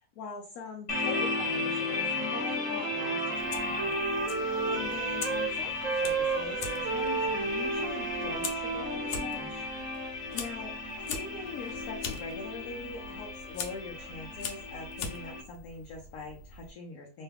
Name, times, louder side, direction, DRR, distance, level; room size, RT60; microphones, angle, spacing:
voice 1, 0.0-3.9 4.7-9.7 10.3-17.2, left 5 dB, 70° left, -1 dB, 1.1 m, -42 dB
sound 1, 0.9-15.4, left 3 dB, 40° left, 0.4 m, -35 dB
Wind instrument woodwind instrument, 1.9-5.5 5.8-10.1, right 5 dB, 65° right, 0.9 m, -33 dB
Fire, 3.3-16.7, left 5 dB, 90° left, 1.2 m, -43 dB
3.2 x 2.2 x 3.3 m, 0.39 s
omnidirectional pair, 1.7 m